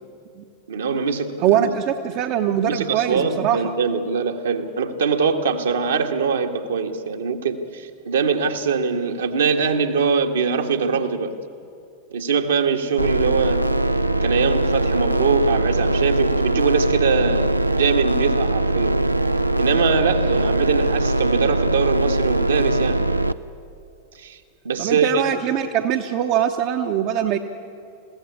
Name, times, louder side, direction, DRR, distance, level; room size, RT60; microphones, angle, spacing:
voice 1, 0.7-1.7 2.7-11.4 12.1-13.6 14.2-18.9 19.6-23.0 24.1-24.4 24.6-25.2, right 5 dB, 65° right, 4 dB, 1.5 m, -22 dB
voice 2, 1.4-3.7 24.8-27.4, right 10 dB, 40° right, 5 dB, 0.9 m, -22 dB
sound 1, 13.0-23.3, right 1 dB, 85° right, 0.5 m, -21 dB
21.5 x 16.0 x 9.7 m, 2.5 s
figure-of-eight pair, 90°, 0 cm